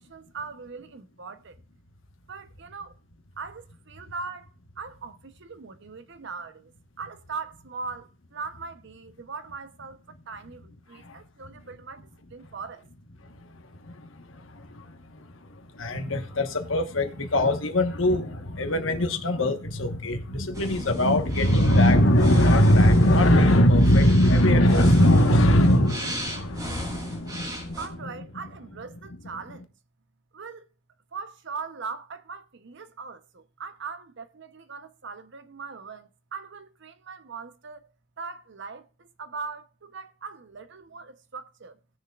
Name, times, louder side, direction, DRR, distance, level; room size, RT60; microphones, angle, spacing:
voice 1, 0.0-1.6 2.3-3.0 3.4-6.7 7.0-12.8 27.8-29.7 30.3-30.7 31.1-41.8, right 4 dB, 60° right, 0.8 m, -40 dB
voice 2, 13.2-27.8, left 1 dB, 75° left, 1.3 m, -21 dB
sound 1, 20.5-27.9, equal, 20° right, 1.9 m, -38 dB
19.0 x 6.5 x 2.4 m
head